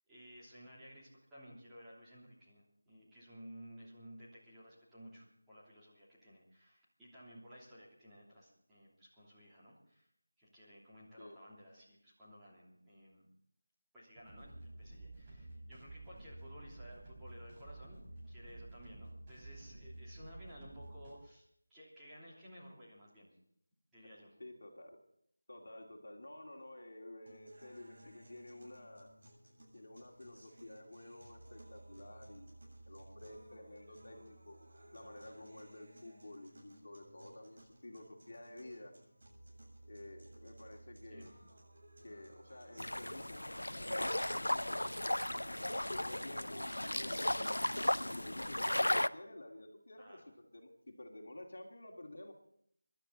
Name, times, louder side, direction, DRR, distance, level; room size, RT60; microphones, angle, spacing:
voice 1, 0.1-10.1 10.4-13.3 13.9-23.3 23.9-24.3 41.1-41.4 50.0-50.3, equal, 5° right, -11 dB, 3.1 m, -56 dB
sound 1, 14.1-21.1, right 2 dB, 25° right, 4.8 m, -51 dB
voice 2, 24.4-25.0 25.5-29.1 29.7-32.6 32.9-34.6 34.9-38.9 39.9-41.3 42.0-45.1 45.8-47.6 48.0-50.2 50.5-52.3, left 1 dB, 55° left, 2 dB, 2.3 m, -51 dB
sound 2, 27.3-43.3, right 1 dB, 55° right, 7.6 m, -58 dB
sound 3, 42.8-49.1, left 1 dB, 80° left, 0.5 m, -35 dB
25.5 x 11.5 x 4.0 m, 0.71 s
figure-of-eight pair, 165°, 0 cm